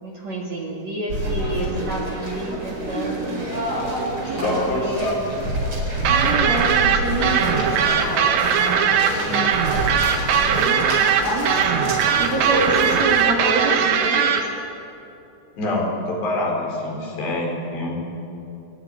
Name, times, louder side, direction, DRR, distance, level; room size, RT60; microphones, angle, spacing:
voice 1, 0.0-3.5 4.3-5.1 6.1-9.0 10.3-11.0 11.2-14.5, right 2 dB, 45° right, -1 dB, 2.7 m, -28 dB
sound 1, 1.1-13.3, right 1 dB, 30° right, 5.0 m, -27 dB
voice 2, 4.2-5.3 9.1-9.4 15.6-18.0, left 2 dB, 70° left, -1 dB, 6.5 m, -26 dB
sound 2, 6.1-14.4, right 8 dB, 75° right, 3.6 m, -19 dB
29.0 x 14.0 x 9.7 m, 2.7 s
omnidirectional pair, 5.2 m